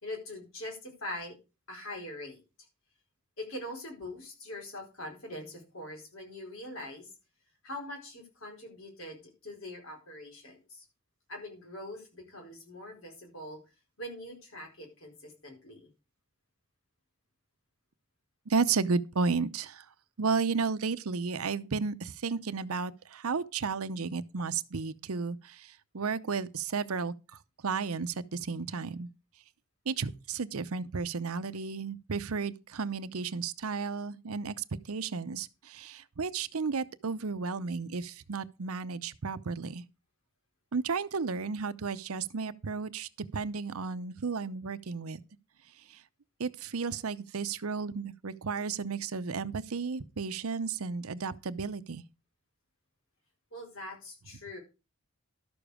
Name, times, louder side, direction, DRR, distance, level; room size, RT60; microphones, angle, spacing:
voice 1, 0.0-1.4 1.7-2.4 3.4-7.1 7.6-10.8 11.3-13.6 14.0-15.9 53.5-54.6, left 1 dB, 65° left, 4.6 m, -43 dB
voice 2, 18.5-19.8 20.2-27.1 27.6-29.1 29.9-39.8 40.7-45.2 46.4-52.0, right 5 dB, 85° right, 0.7 m, -33 dB
12.0 x 7.0 x 4.9 m
head